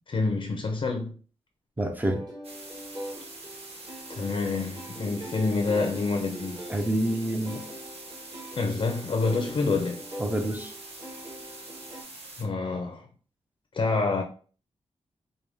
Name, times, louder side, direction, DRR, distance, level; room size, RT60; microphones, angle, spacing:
voice 1, 0.1-1.2 4.1-6.6 8.5-10.0 12.4-13.1 13.7-14.2, left 3 dB, 45° left, 0.6 m, -27 dB
voice 2, 1.8-2.3 6.7-7.7 10.2-10.7, right 1 dB, 15° right, 0.6 m, -27 dB
sound 1, 2.0-12.0, right 1 dB, 35° right, 1.4 m, -43 dB
sound 2, 2.4-12.4, right 2 dB, 55° right, 1.2 m, -44 dB
4.9 x 2.2 x 3.4 m
cardioid pair, 90°, 12 cm